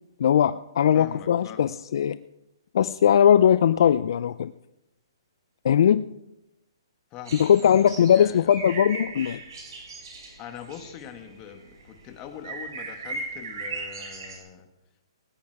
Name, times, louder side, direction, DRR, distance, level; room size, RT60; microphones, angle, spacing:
voice 1, 0.2-2.2 2.7-4.5 5.6-6.1 7.4-9.4, left 9 dB, 60° left, 15 dB, 0.4 m, -20 dB
voice 2, 0.9-1.6 7.1-8.5 10.4-14.7, left 9 dB, 25° left, 6 dB, 1.8 m, -43 dB
sound 1, 7.2-14.4, right 3 dB, 65° right, 5.4 m, -38 dB
18.5 x 10.5 x 4.8 m, 0.89 s
hypercardioid pair, 150°, 3 cm